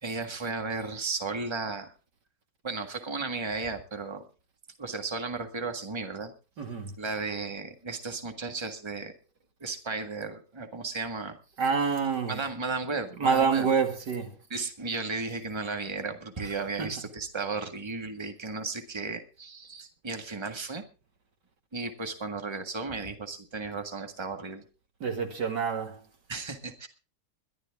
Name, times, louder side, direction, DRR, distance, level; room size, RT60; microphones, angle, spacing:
voice 1, 0.0-1.9 2.6-4.2 4.8-6.3 7.0-9.1 9.6-11.4 12.3-13.7 14.5-20.8 21.7-24.6 26.3-26.9, right 4 dB, 15° right, 1.7 m, -34 dB
voice 2, 6.6-6.9 11.6-12.4 13.1-14.3 16.4-17.0 25.0-26.0, right 5 dB, 85° right, 2.7 m, -27 dB
21.5 x 12.5 x 3.6 m
omnidirectional pair, 1.8 m